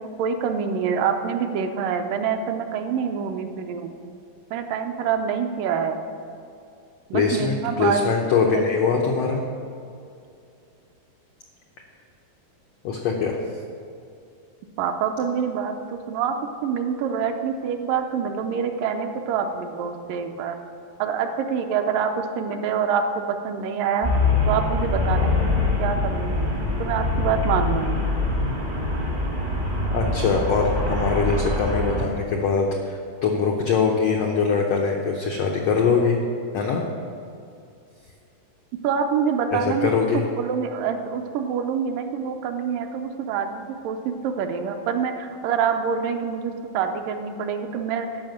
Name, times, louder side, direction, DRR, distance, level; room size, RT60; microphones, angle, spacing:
voice 1, 0.0-3.9 4.5-6.0 7.1-8.0 8.5-8.7 14.8-16.4 16.6-20.6 21.0-24.1 24.5-26.5 26.8-28.1 38.8-39.9 40.4-48.1, right 7 dB, 75° right, 5 dB, 2.2 m, -26 dB
voice 2, 7.1-9.4 12.8-13.4 29.9-36.2 36.5-36.8 39.5-40.2, left 5 dB, 85° left, 0 dB, 1.4 m, -22 dB
Traffic noise roadway noise, 24.0-32.0, left 2 dB, 40° right, 0.7 m, -24 dB
12.5 x 5.6 x 7.8 m, 2.5 s
omnidirectional pair, 4.0 m